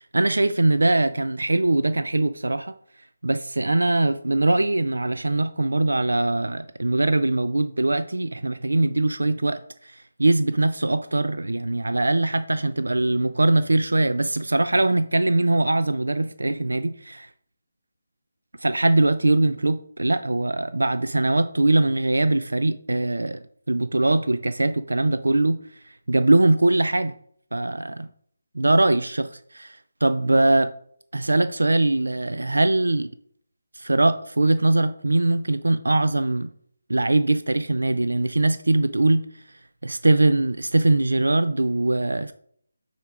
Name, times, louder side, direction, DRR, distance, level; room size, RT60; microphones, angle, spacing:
voice 1, 0.0-2.7 3.2-17.3 18.6-23.4 23.7-25.6 26.1-27.1 27.5-28.1 28.5-30.7 31.1-33.1 33.7-36.5 36.9-39.3 39.8-42.3, right 2 dB, 85° right, 11 dB, 0.3 m, -22 dB
8.9 x 4.4 x 2.4 m, 0.64 s
figure-of-eight pair, 160°, 0 cm